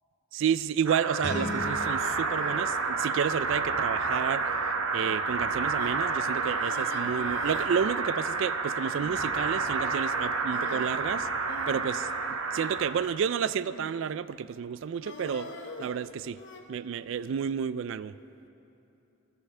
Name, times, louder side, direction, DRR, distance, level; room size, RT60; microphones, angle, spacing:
voice 1, 0.3-4.6 4.9-11.3 11.7-15.5 15.8-16.4 16.7-18.2, right 7 dB, 65° right, 16 dB, 0.3 m, -31 dB
sound 1, 0.9-12.9, right 4 dB, 85° right, 1.0 m, -30 dB
Guitar, 1.2-4.0, left 1 dB, 35° left, 2.0 m, -39 dB
sound 2, 2.2-2.9 3.7-4.0 4.4-4.5 5.0-5.2 5.7-6.0 6.5-7.7 7.9-8.0 8.3-8.5 9.0-9.2 10.5-10.9 11.5-12.8 13.6-14.1 15.0-16.6, left 2 dB, 55° left, 1.1 m, -45 dB
29.0 x 10.0 x 3.3 m, 2.9 s
head